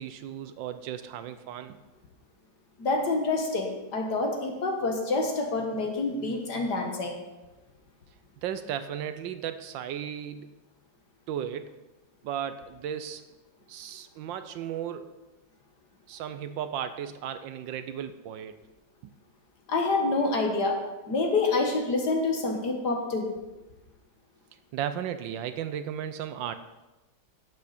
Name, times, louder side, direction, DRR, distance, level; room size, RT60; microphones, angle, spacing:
voice 1, 0.0-1.8 8.4-10.5 11.3-11.8 12.2-13.2 13.7-15.1 16.1-18.6 24.7-26.5, right 9 dB, 80° right, 11 dB, 1.3 m, -35 dB
voice 2, 2.8-7.2 19.7-20.8 21.1-23.3, left 3 dB, 55° left, 2 dB, 2.0 m, -27 dB
11.5 x 8.5 x 4.2 m, 1.1 s
omnidirectional pair, 2.2 m